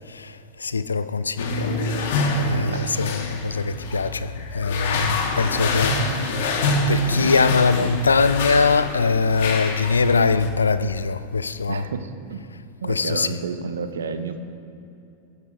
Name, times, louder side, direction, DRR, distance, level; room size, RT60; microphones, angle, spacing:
voice 1, 0.1-1.7 2.3-6.0 6.9-11.9 12.8-13.3, left 4 dB, 75° left, 0.6 m, -22 dB
sound 1, 1.4-10.5, left 2 dB, 55° left, 2.1 m, -26 dB
voice 2, 11.7-12.4 12.8-14.4, right 5 dB, 65° right, 1.2 m, -31 dB
22.5 x 15.5 x 3.4 m
figure-of-eight pair, 90°, 0 cm